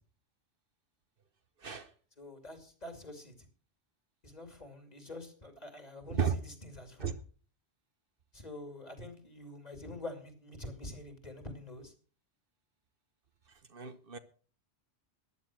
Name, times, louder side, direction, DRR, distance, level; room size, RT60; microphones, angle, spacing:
voice 1, 2.2-3.3 4.2-7.2 8.3-11.9, left 1 dB, 40° left, 6 dB, 2.9 m, -46 dB
voice 2, 13.7-14.2, right 7 dB, 60° right, 11 dB, 1.2 m, -32 dB
14.5 x 10.0 x 6.1 m, 0.41 s
omnidirectional pair, 1.1 m